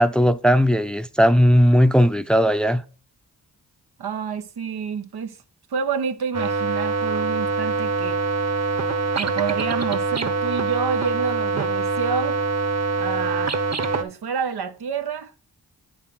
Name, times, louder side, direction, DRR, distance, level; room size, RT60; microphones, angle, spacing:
voice 1, 0.0-2.8, equal, ahead, 0.6 m, -17 dB
voice 2, 4.0-5.4 5.7-8.2 9.2-12.4 13.0-13.7 14.0-15.3, right 6 dB, 80° right, 1.0 m, -28 dB
sound 1, 6.3-14.0, right 4 dB, 45° right, 1.2 m, -24 dB
8.5 x 6.0 x 4.2 m
cardioid pair, 55°, 38 cm